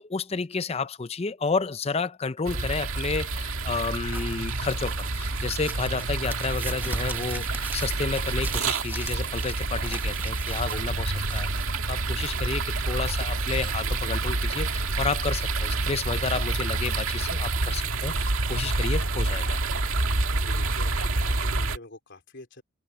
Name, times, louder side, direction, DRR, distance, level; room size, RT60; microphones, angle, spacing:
voice 1, 0.0-19.6, left 4 dB, 30° left, 0.5 m, -31 dB
sound 1, 2.4-21.8, right 3 dB, 80° right, 2.0 m, -28 dB
sound 2, 4.0-12.2, right 2 dB, 10° right, 0.9 m, -41 dB
voice 2, 20.4-22.6, left 2 dB, 60° left, 4.0 m, -47 dB
open air
head